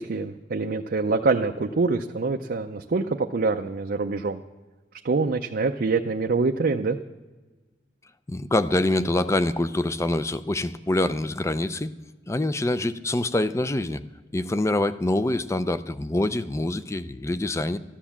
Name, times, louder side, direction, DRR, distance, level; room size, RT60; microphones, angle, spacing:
voice 1, 0.0-4.4 5.0-7.0, right 3 dB, 60° right, 3 dB, 0.5 m, -25 dB
voice 2, 8.3-11.9 12.3-14.0 14.3-17.8, left 1 dB, 15° left, 13 dB, 0.5 m, -25 dB
13.5 x 10.0 x 7.2 m, 1.2 s
head